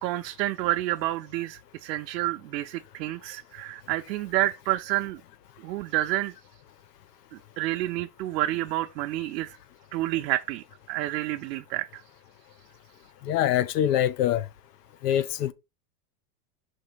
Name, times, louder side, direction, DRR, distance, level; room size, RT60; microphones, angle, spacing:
voice 1, 0.0-5.2 5.6-6.3 7.3-9.6 9.9-12.0, right 16 dB, 85° right, 0.8 m, -29 dB
voice 2, 13.2-14.5 15.0-15.5, left 11 dB, 70° left, 0.9 m, -24 dB
5.5 x 3.3 x 5.4 m
supercardioid pair, 180°, 49 cm